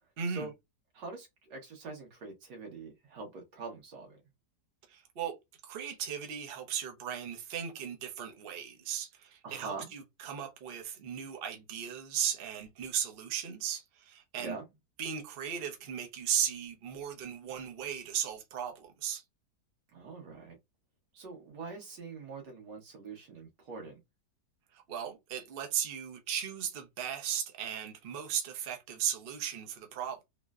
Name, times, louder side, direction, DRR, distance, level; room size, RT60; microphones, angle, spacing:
voice 1, 0.2-0.5 4.9-5.3 5.6-14.6 15.0-19.2 24.7-30.2, right 8 dB, 45° right, 0.7 m, -36 dB
voice 2, 0.9-4.2 9.4-9.9 14.4-14.7 19.9-20.6 21.1-24.0, right 4 dB, 85° right, 1.8 m, -44 dB
3.8 x 2.1 x 2.3 m
omnidirectional pair, 1.8 m